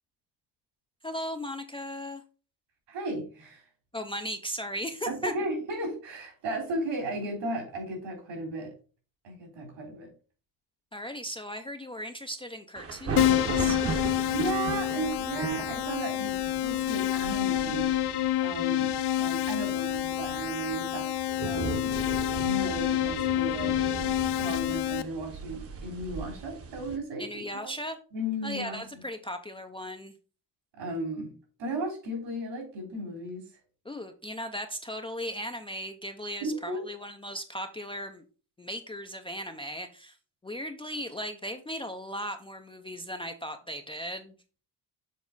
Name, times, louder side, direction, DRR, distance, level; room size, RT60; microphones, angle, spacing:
voice 1, 1.0-2.2 3.9-5.3 10.9-13.8 27.2-28.0 28.4-30.1 33.8-38.2 38.6-40.2 40.4-44.3, equal, 15° left, 6 dB, 0.4 m, -37 dB
voice 2, 2.9-3.6 5.1-8.7 9.2-10.1 14.3-17.8 18.4-21.1 21.4-22.0 22.3-23.8 24.4-27.7 28.1-28.8 30.8-31.3 31.6-33.4 36.4-36.8, right 1 dB, 75° right, 2 dB, 3.4 m, -35 dB
sound 1, 12.7-27.0, right 4 dB, 30° right, 0.8 m, -38 dB
Keyboard (musical), 13.2-25.0, left 13 dB, 60° left, 0.6 m, -28 dB
7.2 x 4.2 x 3.8 m, 0.37 s
cardioid pair, 140°, 44 cm